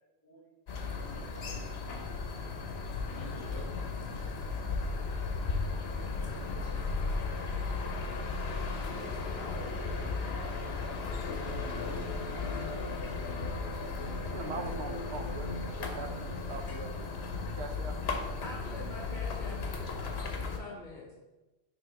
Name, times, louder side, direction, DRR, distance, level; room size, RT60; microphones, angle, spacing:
sound 1, 0.7-20.6, left 4 dB, 75° left, 1.0 m, -35 dB
voice 1, 1.0-1.4 3.3-3.6 4.1-4.4 4.6-4.8 5.7-6.1 8.3-8.4 9.3-10.0 10.4-10.7 11.4-12.1, right 1 dB, 20° left, -6 dB, 2.3 m, -50 dB
voice 2, 9.0-10.1 18.4-21.1, left 2 dB, 50° left, -2 dB, 1.2 m, -47 dB
voice 3, 14.3-17.0 17.6-18.0, right 4 dB, 80° right, 5 dB, 1.0 m, -42 dB
6.2 x 3.2 x 5.0 m, 1.1 s
omnidirectional pair, 1.1 m